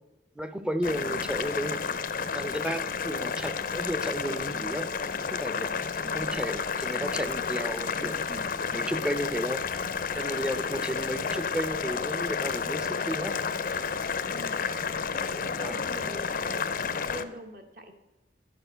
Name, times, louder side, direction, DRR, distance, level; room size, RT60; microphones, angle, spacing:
voice 1, 0.4-2.0 2.3-4.9 5.3-5.7 6.1-9.6 10.1-13.3 15.6-15.8, equal, 5° right, 9 dB, 0.6 m, -33 dB
Boiling, 0.8-17.2, left 5 dB, 50° left, 0.5 m, -31 dB
voice 2, 0.9-1.3 6.0-6.4 14.3-14.6 15.1-18.0, equal, 50° right, 5 dB, 1.3 m, -44 dB
Wind instrument woodwind instrument, 10.9-16.2, left 7 dB, 85° left, 0.6 m, -45 dB
11.0 x 6.8 x 5.6 m, 1.1 s
head